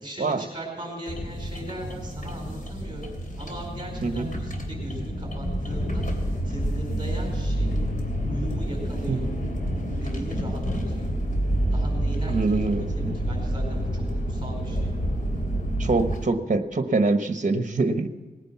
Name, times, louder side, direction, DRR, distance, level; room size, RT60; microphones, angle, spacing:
voice 1, 0.0-6.0 6.4-7.7 8.2-9.3 10.0-10.6 10.9-11.1 11.7-12.6 12.9-14.0 14.3-14.8, right 1 dB, 25° right, 0 dB, 4.6 m, -38 dB
sound 1, 1.1-16.2, equal, 50° left, 3.3 m, -28 dB
voice 2, 12.3-13.1 15.8-18.1, right 3 dB, 50° right, 8 dB, 1.2 m, -24 dB
19.0 x 9.8 x 6.0 m, 1.4 s
wide cardioid pair, 90°, 17 cm